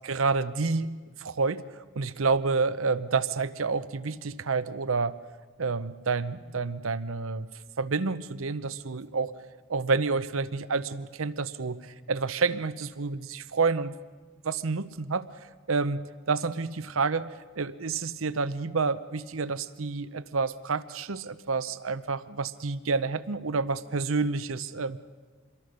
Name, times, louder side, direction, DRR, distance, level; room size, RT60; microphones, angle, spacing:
voice 1, 0.1-5.2 5.6-7.5 7.8-9.3 9.7-13.9 14.4-25.0, right 4 dB, 70° right, 14 dB, 0.8 m, -29 dB
26.5 x 22.0 x 6.6 m, 1.5 s
head